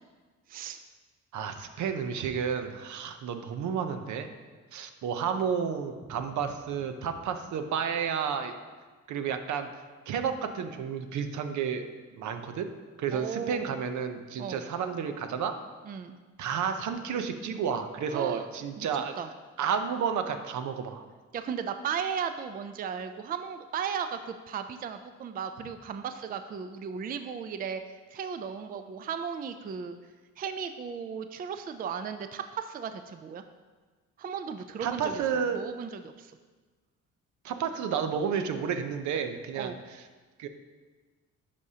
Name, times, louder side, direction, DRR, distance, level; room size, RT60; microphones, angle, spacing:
voice 1, 0.5-0.8 13.1-13.7 14.4-14.6 15.8-16.2 18.1-18.5 18.8-18.9 19.2-19.3 21.3-30.0 30.4-33.4 34.2-35.2 35.5-36.3 39.6-39.8, right 7 dB, 30° right, 9 dB, 0.4 m, -36 dB
voice 2, 1.3-4.3 4.7-8.5 9.1-9.7 10.1-12.7 13.0-15.6 16.4-19.1 19.6-21.0 34.8-35.6 37.4-39.7 40.4-40.5, right 7 dB, 70° right, 8 dB, 0.7 m, -31 dB
10.5 x 4.9 x 2.8 m, 1.4 s
cardioid pair, 90°, 30 cm